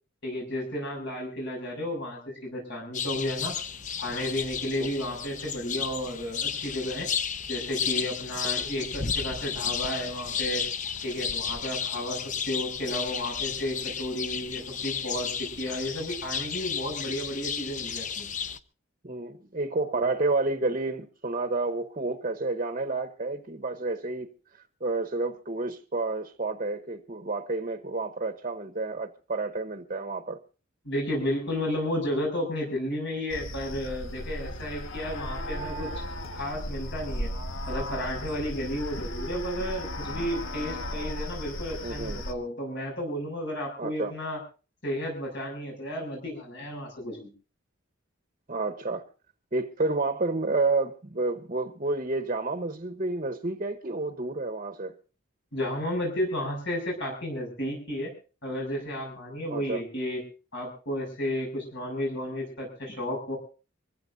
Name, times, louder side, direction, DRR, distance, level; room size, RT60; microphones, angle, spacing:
voice 1, 0.2-3.6 4.0-7.1 7.5-10.6 11.0-12.2 12.5-18.3 19.9-20.0 30.8-35.9 36.3-37.3 37.7-44.4 44.8-47.3 55.5-58.1 58.4-60.2 60.5-63.4, left 1 dB, 60° left, 6.7 m, -32 dB
sound 1, 2.9-18.6, left 7 dB, 40° left, 0.7 m, -33 dB
voice 2, 19.0-30.4 41.8-42.2 43.8-44.1 48.5-49.0 49.5-54.9 59.5-59.8, right 3 dB, 40° right, 1.0 m, -30 dB
sound 2, 33.3-42.3, equal, 75° left, 1.6 m, -35 dB
25.0 x 15.5 x 2.7 m
head